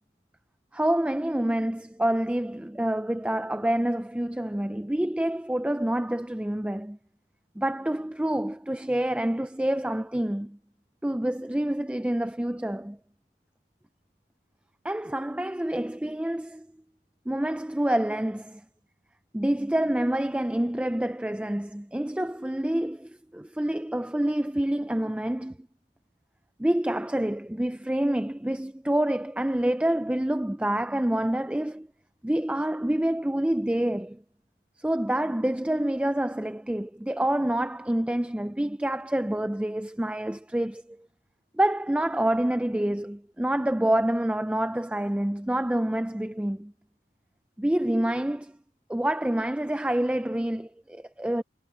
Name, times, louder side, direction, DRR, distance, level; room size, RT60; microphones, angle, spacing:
voice 1, 0.7-7.0 7.6-10.6 11.0-13.0 14.8-16.7 17.3-18.6 19.3-25.6 26.6-31.9 32.2-34.2 34.8-41.0 41.6-46.7 47.6-48.5 48.9-51.4, right 1 dB, 5° right, 0.4 m, -27 dB
head